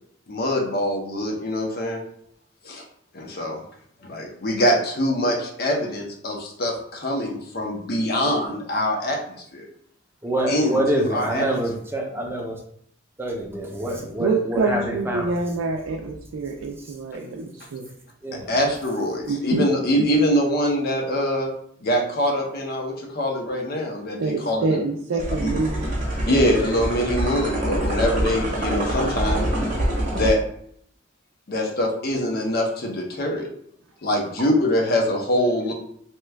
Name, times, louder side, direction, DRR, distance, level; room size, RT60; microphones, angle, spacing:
voice 1, 0.3-2.0 2.6-2.8 3.1-3.6 4.0-9.6 10.5-11.4 18.5-21.5 21.8-24.8 25.4-25.5 26.2-29.5 30.1-30.4 31.5-33.5 34.0-35.7, equal, 50° left, 1 dB, 0.6 m, -24 dB
voice 2, 10.2-12.6 13.2-15.3 16.8-16.9 18.2-18.5, right 1 dB, 10° right, -1 dB, 0.5 m, -26 dB
voice 3, 13.9-17.9 19.3-19.6 20.0-20.1 24.2-25.9 26.3-26.4, right 3 dB, 85° right, 2 dB, 0.4 m, -26 dB
sound 1, 25.2-30.3, right 1 dB, 40° right, 0.8 m, -25 dB
2.9 x 2.2 x 3.3 m, 0.67 s
head